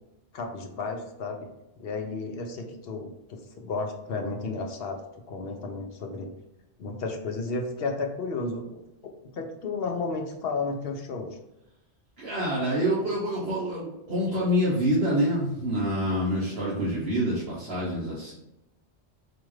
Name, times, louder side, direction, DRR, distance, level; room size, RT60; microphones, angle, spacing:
voice 1, 0.3-1.5 1.8-5.0 5.3-6.3 6.8-11.4, left 3 dB, 65° left, 3 dB, 0.8 m, -33 dB
voice 2, 12.2-18.3, equal, 65° right, -8 dB, 1.2 m, -26 dB
4.3 x 2.5 x 3.1 m, 0.90 s
omnidirectional pair, 1.1 m